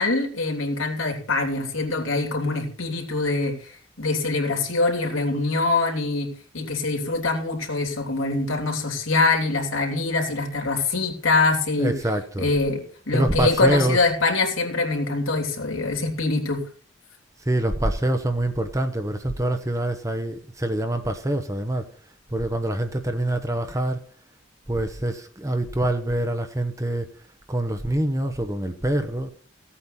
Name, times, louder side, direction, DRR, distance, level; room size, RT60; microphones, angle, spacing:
voice 1, 0.0-6.3 6.5-11.9 12.4-16.6, left 3 dB, 90° left, 3.3 m, -24 dB
voice 2, 11.8-12.5 13.1-14.0 17.5-21.9 22.3-24.0 24.7-27.1 27.5-29.3, right 1 dB, 15° right, 1.0 m, -25 dB
16.0 x 8.6 x 4.3 m
head